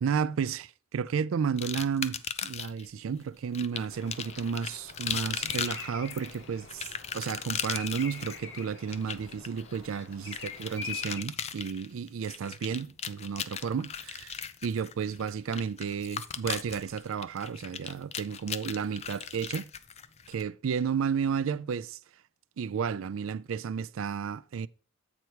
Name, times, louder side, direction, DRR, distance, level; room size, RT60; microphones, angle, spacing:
voice 1, 0.0-6.9 7.1-19.7 20.3-22.0 22.6-24.7, right 6 dB, 70° right, 0.4 m, -32 dB
sound 1, 1.6-2.9 3.5-20.4, left 7 dB, 30° left, 0.4 m, -38 dB
Bird vocalization bird call bird song, 3.9-11.2, left 6 dB, 60° left, 0.9 m, -44 dB
8.2 x 4.6 x 4.5 m
head